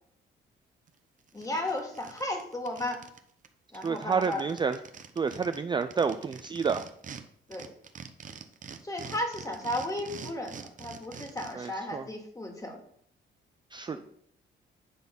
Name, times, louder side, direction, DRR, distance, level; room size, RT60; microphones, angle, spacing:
sound 1, 0.9-1.0 1.3-3.2 3.4-3.5 3.7-7.2 7.5-11.7, right 6 dB, 40° right, 0.8 m, -45 dB
voice 1, 1.3-3.0 3.7-4.5 7.5-7.7 8.8-12.8 13.9-14.0, left 1 dB, 15° left, 2 dB, 2.1 m, -34 dB
voice 2, 3.8-4.8 5.2-6.9 11.6-12.0 13.7-14.0, right 5 dB, 25° right, 9 dB, 0.4 m, -29 dB
9.0 x 4.0 x 5.3 m, 0.67 s
cardioid pair, 90°, 20 cm